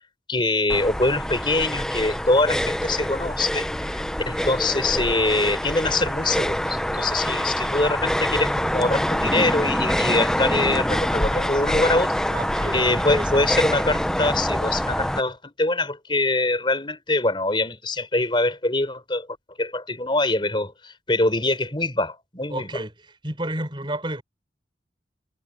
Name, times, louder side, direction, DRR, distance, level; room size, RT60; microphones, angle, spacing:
voice 1, 0.3-12.2 12.7-19.3 19.6-22.7, left 2 dB, 25° left, 4.0 m, -24 dB
sound 1, 0.7-15.2, equal, 5° left, 0.7 m, -25 dB
voice 2, 12.3-13.4 22.5-22.9 23.2-24.2, right 1 dB, 25° right, 5.8 m, -31 dB
head